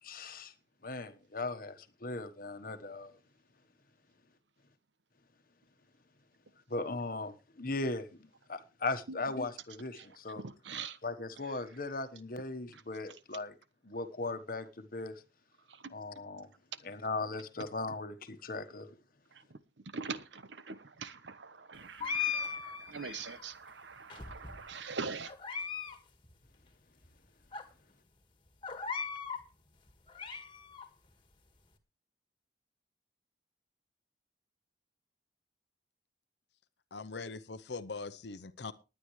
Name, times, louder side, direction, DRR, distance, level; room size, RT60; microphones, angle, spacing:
voice 1, 0.0-0.5 0.8-3.1 6.7-10.4 11.0-13.5 13.8-15.2 15.9-16.5 16.8-18.9, left 3 dB, 50° left, 1.2 m, -38 dB
voice 2, 10.4-11.0 11.4-11.6 12.7-12.8 15.7-15.9 19.3-19.6 19.8-25.3, right 5 dB, 75° right, 1.0 m, -43 dB
sound 1, 22.0-23.4 24.1-24.8 25.3-26.0 26.2-26.3 27.0-27.1 27.5-27.6 28.6-29.4 29.9-30.9, left 6 dB, 25° left, 1.8 m, -38 dB
voice 3, 36.9-38.7, left 4 dB, 65° left, 0.7 m, -41 dB
19.5 x 9.6 x 3.2 m
head